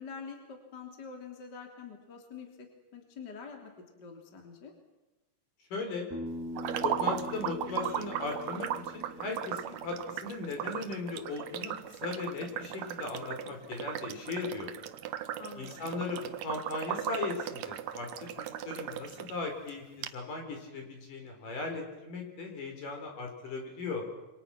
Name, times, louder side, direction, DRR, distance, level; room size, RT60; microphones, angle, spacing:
voice 1, 0.0-2.7 2.9-3.7 4.0-4.7 15.4-15.8, left 5 dB, 25° left, 2 dB, 3.4 m, -46 dB
voice 2, 5.7-6.1 6.8-11.7 12.0-14.7 15.6-18.1 18.4-24.1, left 3 dB, 55° left, 3 dB, 5.8 m, -37 dB
Bass guitar, 6.1-10.4, left 1 dB, 5° right, 3.8 m, -43 dB
sound 1, 6.6-19.3 19.7-19.8 20.0-20.1, right 11 dB, 75° right, 1.7 m, -37 dB
27.5 x 25.5 x 6.0 m, 1.1 s
omnidirectional pair, 4.6 m